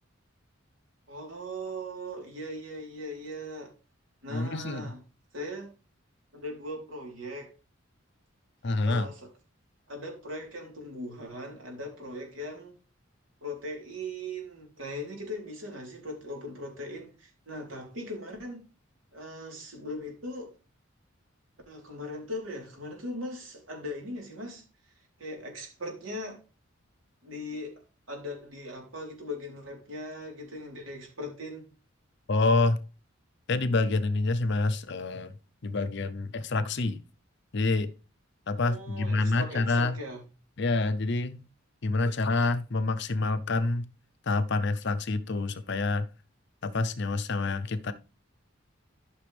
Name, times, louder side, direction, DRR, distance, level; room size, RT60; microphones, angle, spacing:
voice 1, 1.1-3.7 4.2-5.0 5.3-5.7 6.3-7.5 8.8-9.3 9.9-12.8 13.4-18.6 19.1-20.5 21.7-24.6 25.2-26.4 27.2-27.8 28.1-31.6 38.6-40.2, left 1 dB, 70° right, 3.6 m, -39 dB
voice 2, 4.3-4.9 8.6-9.1 32.3-32.8 33.5-35.3 35.6-37.0 37.5-37.9 38.5-40.0 40.6-41.4 41.8-43.9 44.3-46.1 46.6-47.9, left 3 dB, 55° left, 0.7 m, -27 dB
13.0 x 6.0 x 3.4 m
head